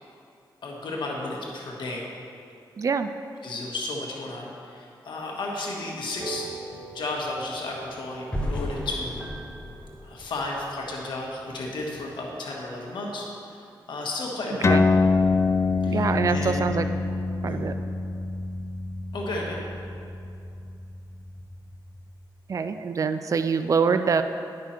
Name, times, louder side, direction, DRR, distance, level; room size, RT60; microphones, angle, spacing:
voice 1, 0.6-2.1 3.4-6.5 6.9-9.2 10.0-14.7 15.8-16.7 17.5-17.6 19.1-19.6, left 2 dB, 75° left, -2 dB, 1.5 m, -33 dB
voice 2, 2.8-3.1 14.6-14.8 15.9-16.9 17.4-17.7 22.5-24.2, right 5 dB, 45° right, 9 dB, 0.4 m, -25 dB
sound 1, 6.1-12.1, right 4 dB, 15° right, 1.4 m, -44 dB
sound 2, 8.3-11.3, left 1 dB, 15° left, 1.2 m, -34 dB
sound 3, 14.6-21.6, left 3 dB, 35° left, 0.5 m, -25 dB
10.5 x 6.0 x 4.4 m, 2.5 s
cardioid pair, 80°, 8 cm